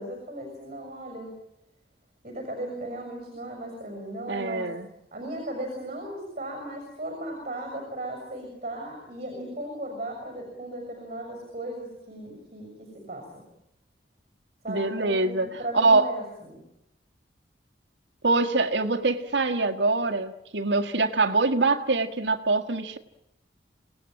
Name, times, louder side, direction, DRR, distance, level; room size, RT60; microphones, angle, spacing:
voice 1, 0.0-1.4 2.2-4.7 5.1-13.4 14.6-16.6, right 1 dB, 40° right, 4 dB, 6.5 m, -36 dB
voice 2, 4.3-4.9 14.7-16.1 18.2-23.0, right 3 dB, 85° right, 4 dB, 1.8 m, -24 dB
27.5 x 18.5 x 9.0 m, 0.82 s
head